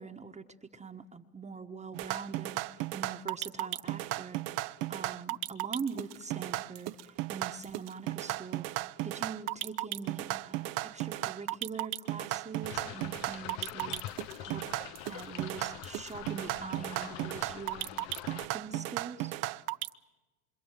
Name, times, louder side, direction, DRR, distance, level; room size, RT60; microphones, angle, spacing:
voice 1, 0.0-8.7 9.0-14.6 15.0-19.4, right 5 dB, 15° right, 3 dB, 1.4 m, -43 dB
sound 1, 1.9-19.9, right 18 dB, 50° right, 1.0 m, -35 dB
sound 2, 12.6-18.5, left 12 dB, 50° left, 1.1 m, -44 dB
27.0 x 25.5 x 7.6 m, 1.1 s
hypercardioid pair, 100°, 44 cm